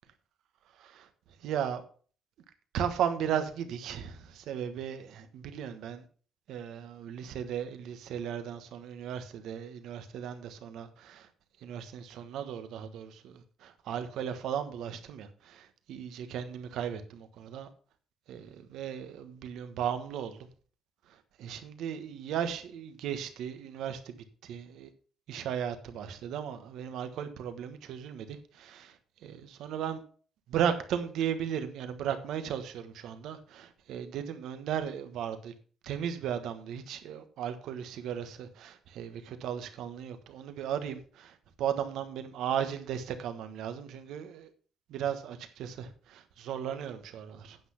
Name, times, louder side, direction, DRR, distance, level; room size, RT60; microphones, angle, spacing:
voice 1, 0.8-1.8 2.7-6.0 6.5-11.3 11.6-17.7 18.3-20.5 21.1-24.9 25.3-30.0 30.5-35.5 35.8-44.5 44.9-47.6, right 8 dB, 85° right, 9 dB, 1.3 m, -36 dB
9.3 x 6.0 x 5.8 m, 0.42 s
cardioid pair, 90°, 0 cm